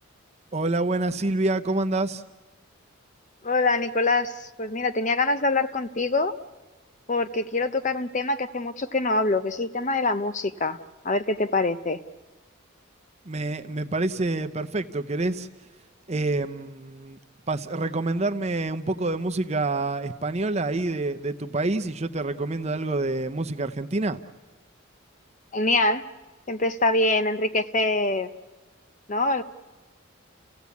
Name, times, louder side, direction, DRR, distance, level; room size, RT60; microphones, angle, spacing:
voice 1, 0.5-2.2 13.3-15.5 16.1-17.2 17.5-24.2, right 2 dB, 30° right, 9 dB, 0.7 m, -27 dB
voice 2, 3.4-6.3 7.1-10.8 11.0-12.0 25.5-26.0 26.5-28.3 29.1-29.4, left 2 dB, 35° left, 11 dB, 0.7 m, -24 dB
30.0 x 16.0 x 8.4 m, 1.2 s
head